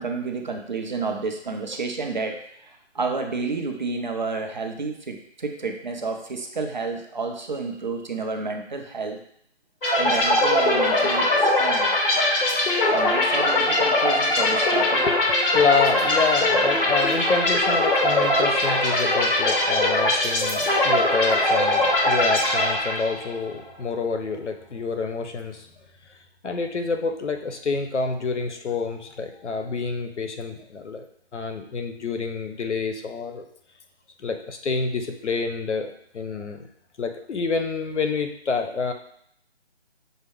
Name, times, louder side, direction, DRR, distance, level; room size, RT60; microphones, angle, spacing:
voice 1, 0.0-9.2 10.0-11.9 12.9-15.1, right 4 dB, 45° right, 3 dB, 0.5 m, -30 dB
sound 1, 9.8-23.4, left 1 dB, 50° left, 1.1 m, -21 dB
voice 2, 15.5-25.7 26.4-31.1 31.3-33.4 34.2-36.7 37.0-38.9, left 4 dB, 85° left, 6 dB, 0.8 m, -27 dB
6.3 x 2.2 x 3.5 m, 0.67 s
figure-of-eight pair, 160°, 34 cm